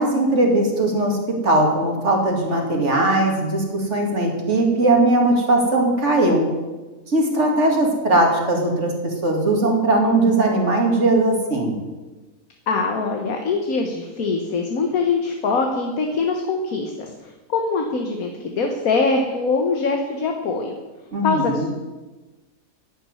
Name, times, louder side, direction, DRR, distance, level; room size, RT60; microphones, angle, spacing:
voice 1, 0.0-6.5 7.1-11.8 21.1-21.7, right 2 dB, 55° right, 1 dB, 2.7 m, -19 dB
voice 2, 12.7-20.8 21.2-21.7, left 4 dB, 75° left, 3 dB, 1.7 m, -23 dB
11.5 x 7.3 x 9.7 m, 1.2 s
omnidirectional pair, 1.5 m